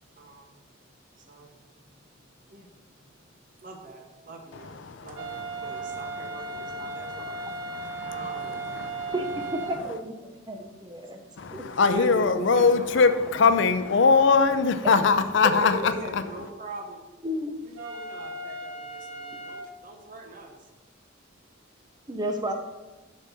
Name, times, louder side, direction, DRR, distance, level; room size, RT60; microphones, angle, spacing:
voice 1, 0.1-0.6 1.1-1.6 1.8-2.8 3.1-3.3 3.6-5.3 5.6-10.0 10.4-13.1 15.5-17.1 17.5-20.7, right 2 dB, 45° right, 2 dB, 1.0 m, -42 dB
voice 2, 4.6-9.1 11.4-16.2, left 4 dB, 65° left, 10 dB, 0.5 m, -23 dB
sound 1, 5.2-9.8 17.8-19.7, right 3 dB, 85° right, 0.9 m, -36 dB
voice 3, 9.7-10.2 10.5-11.2 11.5-11.6 17.2-17.5 22.1-22.5, right 1 dB, 20° right, 4 dB, 0.6 m, -31 dB
7.2 x 6.5 x 4.1 m, 1.2 s
head